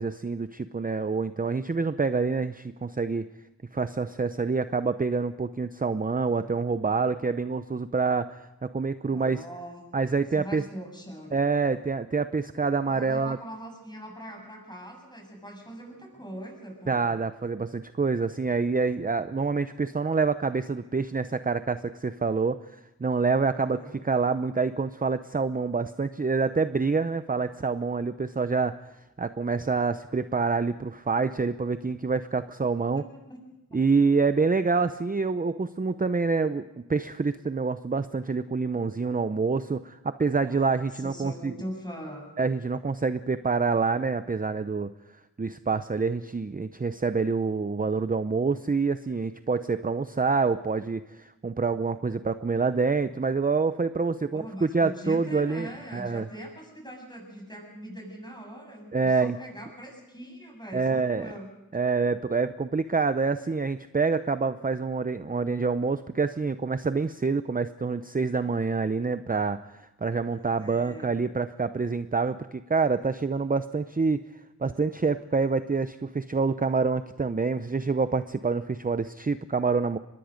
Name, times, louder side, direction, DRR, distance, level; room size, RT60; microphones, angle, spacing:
voice 1, 0.0-3.3 3.7-9.4 9.9-10.6 11.3-13.4 16.9-22.6 23.0-28.7 29.2-33.0 33.7-41.5 42.4-44.9 45.4-56.3 58.9-59.4 60.7-61.3 61.7-69.6 70.0-74.2 74.6-80.0, right 4 dB, 25° right, 11 dB, 0.6 m, -27 dB
voice 2, 9.0-9.8 10.3-11.3 12.9-17.1 23.6-24.0 33.0-33.1 33.3-33.4 33.7-33.8 40.3-42.3 54.3-61.5 70.4-71.2, equal, 15° left, 2 dB, 7.3 m, -42 dB
24.0 x 21.0 x 5.1 m, 0.98 s
wide cardioid pair, 65°, 34 cm